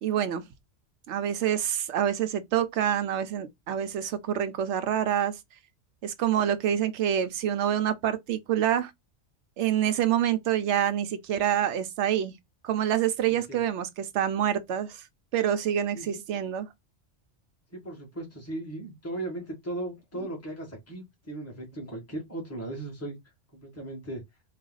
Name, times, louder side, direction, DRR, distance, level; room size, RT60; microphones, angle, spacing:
voice 1, 0.0-0.4 1.1-5.4 6.0-8.9 9.6-12.3 12.6-15.0 15.3-16.7, right 10 dB, 80° right, 0.9 m, -27 dB
voice 2, 13.3-13.6 15.9-16.2 17.7-23.2 23.5-24.2, right 2 dB, 15° left, 1.5 m, -37 dB
4.1 x 2.3 x 3.9 m
omnidirectional pair, 1.2 m